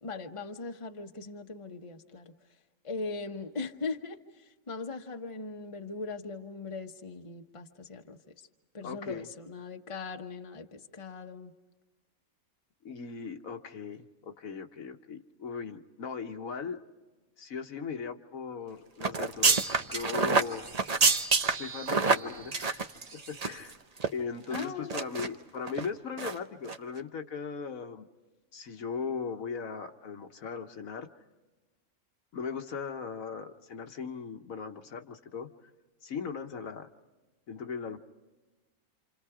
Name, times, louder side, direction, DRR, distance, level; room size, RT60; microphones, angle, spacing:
voice 1, 0.0-2.3 2.8-4.2 4.7-8.2 8.7-11.5 24.5-25.0, left 3 dB, 25° left, 4 dB, 1.0 m, -39 dB
voice 2, 8.8-9.3 12.8-16.8 17.4-20.7 21.5-23.7 24.1-28.1 28.5-31.1 32.3-35.5 36.0-36.9 37.5-38.0, left 5 dB, 65° left, 6 dB, 1.4 m, -38 dB
sound 1, 19.0-23.7 24.0-24.1 24.5-25.3 25.7-25.9 26.2-26.4 26.6-26.8, right 4 dB, 35° right, 0.8 m, -27 dB
29.0 x 27.5 x 4.9 m, 1.2 s
omnidirectional pair, 1.6 m